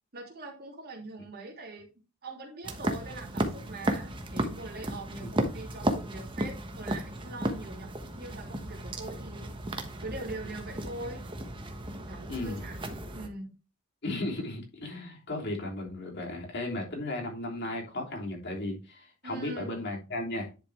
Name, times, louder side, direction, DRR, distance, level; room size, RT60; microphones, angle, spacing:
voice 1, 0.1-1.9 2.2-9.6 10.0-11.2 11.9-12.8 13.1-13.6 19.2-19.7, right 2 dB, 45° right, 0 dB, 3.0 m, -42 dB
sound 1, 2.6-13.3, right 1 dB, 25° right, 1.2 m, -34 dB
voice 2, 12.3-12.6 14.0-20.5, left 1 dB, 55° left, -1 dB, 3.3 m, -35 dB
10.5 x 5.2 x 3.4 m, 0.31 s
head